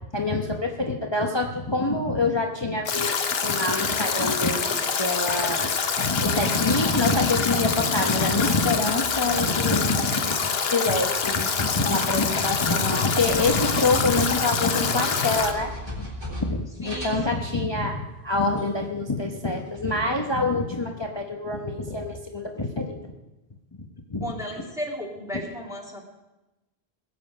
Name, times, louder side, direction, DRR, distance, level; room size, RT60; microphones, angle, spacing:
voice 1, 0.1-3.1 3.4-5.7 6.0-10.4 10.7-16.1 16.5-23.0 23.8-24.3, left 2 dB, 25° left, 1 dB, 1.0 m, -26 dB
Stream / Drip / Trickle dribble, 2.9-15.5, left 5 dB, 65° left, 1.2 m, -26 dB
sound 1, 9.0-9.9 11.0-11.2 12.1-12.2 13.1-14.6 14.8-14.9 15.4-17.8 18.6-18.7 19.1-19.3 19.7-20.5, equal, 25° right, 3.6 m, -37 dB
voice 2, 16.8-17.6 24.2-26.0, equal, 5° right, -2 dB, 2.2 m, -35 dB
20.5 x 7.9 x 5.2 m, 1.0 s
omnidirectional pair, 1.1 m